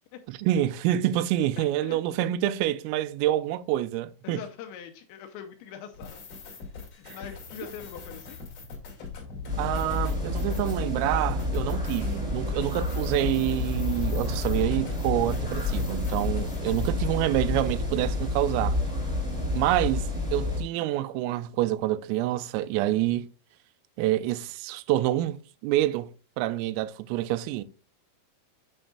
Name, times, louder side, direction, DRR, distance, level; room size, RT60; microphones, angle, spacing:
voice 1, 0.3-4.4 7.1-7.2 9.6-18.8 19.5-23.3 24.0-25.4 25.6-26.1 26.4-27.6, right 14 dB, 90° right, 3.2 m, -27 dB
voice 2, 1.6-2.3 4.2-6.2 6.5-6.6 6.9-8.4 16.3-16.6, left 8 dB, 80° left, 2.7 m, -43 dB
sound 1, 5.9-16.9, left 5 dB, 50° left, 2.9 m, -40 dB
sound 2, 9.5-20.6, left 2 dB, ahead, 1.5 m, -29 dB
8.9 x 6.3 x 2.4 m
omnidirectional pair, 5.8 m